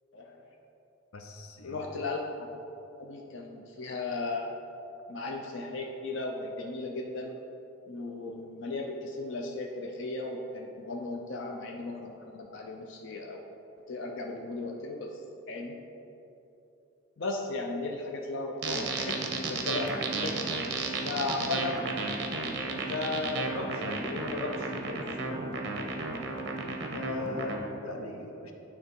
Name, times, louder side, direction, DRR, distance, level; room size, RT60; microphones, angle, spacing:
voice 1, 0.1-0.5 1.6-2.5 3.0-4.5 5.1-7.4 7.9-13.4 13.9-15.2 15.5-15.8 17.2-20.4 21.0-21.9 22.7-25.0, left 2 dB, 60° left, 1 dB, 0.5 m, -36 dB
voice 2, 1.1-1.9 26.9-28.5, left 2 dB, 90° left, 3 dB, 0.8 m, -39 dB
sound 1, 18.6-27.6, right 3 dB, 50° right, 0.8 m, -33 dB
9.7 x 3.5 x 5.2 m, 2.9 s
head